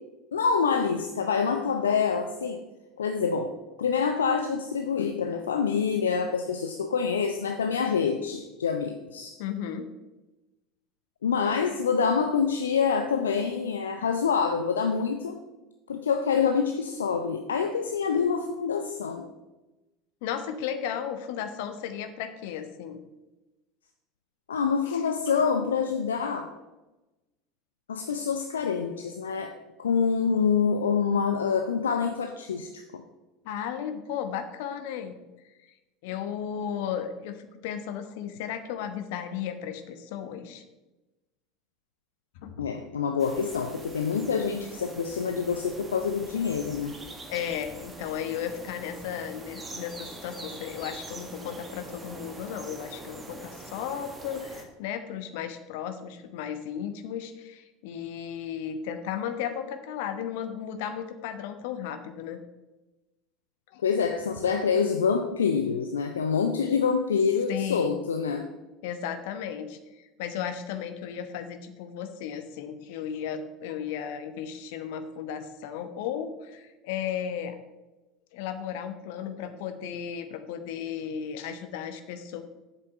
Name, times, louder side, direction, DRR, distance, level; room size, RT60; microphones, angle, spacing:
voice 1, 0.3-2.6 3.0-3.5 3.8-9.4 11.2-15.4 15.9-19.2 24.5-26.5 27.9-29.5 29.8-33.0 42.6-46.9 63.8-68.5, left 6 dB, 75° left, 6 dB, 0.6 m, -26 dB
voice 2, 9.4-9.9 20.2-23.0 24.9-25.1 33.4-35.2 36.0-40.6 42.3-42.8 47.3-62.4 63.7-63.8 67.5-67.9 68.8-77.6 78.3-82.4, left 8 dB, 60° left, 9 dB, 1.1 m, -35 dB
sound 1, 43.2-54.6, right 2 dB, 20° right, 1.8 m, -44 dB
8.2 x 5.8 x 7.1 m, 1.1 s
figure-of-eight pair, 70°, 0 cm